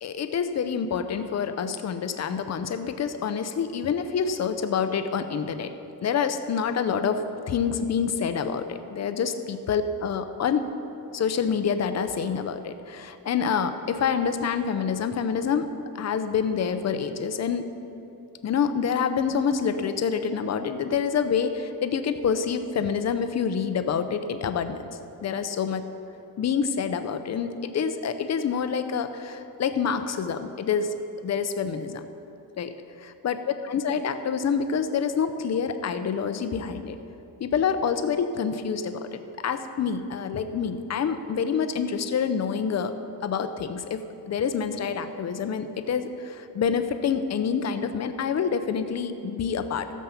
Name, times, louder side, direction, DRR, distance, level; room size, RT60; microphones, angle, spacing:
voice 1, 0.0-5.7 6.0-10.7 11.1-15.7 15.9-17.6 18.4-25.8 26.4-30.9 31.2-32.1 32.6-37.0 37.4-42.9 43.2-49.9, left 6 dB, 45° left, 9 dB, 0.7 m, -27 dB
14.5 x 7.4 x 5.8 m, 2.8 s
wide cardioid pair, 175°, 36 cm